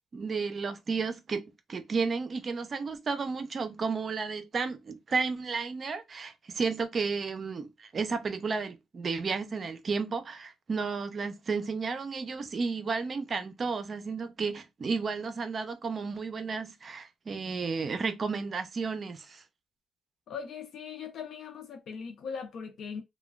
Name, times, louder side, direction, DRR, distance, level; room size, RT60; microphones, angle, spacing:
voice 1, 0.1-1.4 1.7-19.4, right 4 dB, 45° right, 0.5 m, -32 dB
voice 2, 20.3-23.0, left 6 dB, 65° left, 0.5 m, -40 dB
3.0 x 2.2 x 2.3 m
cardioid pair, 90°, 0 cm